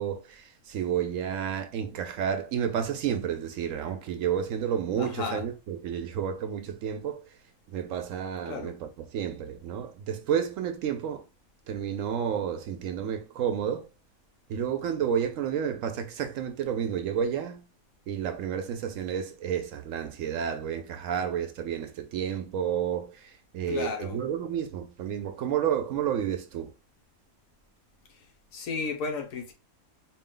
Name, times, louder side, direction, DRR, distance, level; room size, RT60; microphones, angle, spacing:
voice 1, 0.0-7.3 7.7-11.2 11.7-13.9 14.5-17.6 18.1-26.7, right 8 dB, 70° right, 0.9 m, -31 dB
voice 2, 5.0-5.4 8.5-8.7 23.7-24.2 28.5-29.5, left 5 dB, 65° left, 1.2 m, -33 dB
4.3 x 2.1 x 3.8 m
omnidirectional pair, 1.5 m